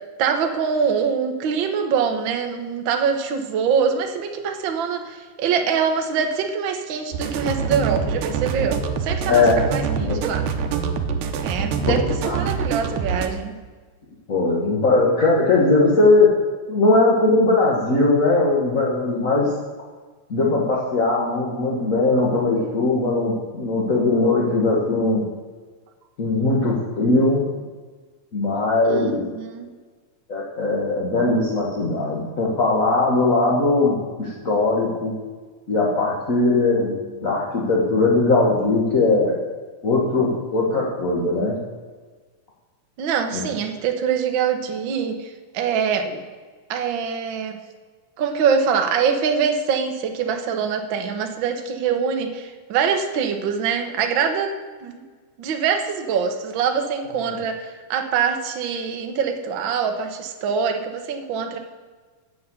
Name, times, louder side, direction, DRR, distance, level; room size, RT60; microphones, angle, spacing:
voice 1, 0.2-10.4 11.4-12.0 12.3-13.5 28.9-29.7 43.0-46.2 46.7-47.6 48.2-54.5 54.8-55.0 55.4-61.6, right 6 dB, 70° right, 5 dB, 1.1 m, -24 dB
sound 1, 7.1-13.3, right 6 dB, 85° right, 2.5 m, -25 dB
voice 2, 9.3-9.7 10.0-10.3 11.9-12.4 14.3-16.3 16.7-19.5 20.3-25.2 26.2-27.4 28.3-29.2 30.3-35.1 35.7-39.4 39.8-41.6 43.3-43.4, left 2 dB, 40° left, -4 dB, 1.2 m, -19 dB
9.4 x 6.9 x 8.1 m, 1.4 s
omnidirectional pair, 3.6 m